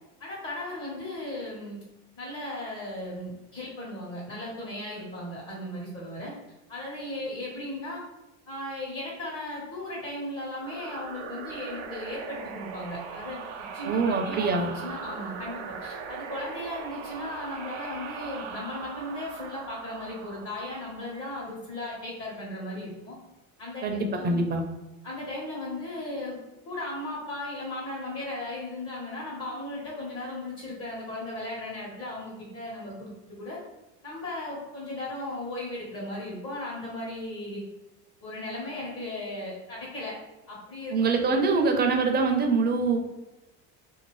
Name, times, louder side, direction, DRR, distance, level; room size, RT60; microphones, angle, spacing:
voice 1, 0.2-1.8 2.2-6.3 6.7-8.0 8.5-23.2 23.6-24.5 25.0-26.4 26.6-33.1 33.4-33.6 34.0-37.6 38.2-40.2 40.5-40.9, left 1 dB, 40° left, -4 dB, 1.2 m, -36 dB
sound 1, 10.6-21.9, right 6 dB, 85° right, 0.5 m, -40 dB
voice 2, 13.8-14.7 23.8-24.6 40.9-43.0, right 4 dB, 30° right, 3 dB, 0.6 m, -24 dB
2.7 x 2.4 x 3.1 m, 1.0 s
supercardioid pair, 100°, 33 cm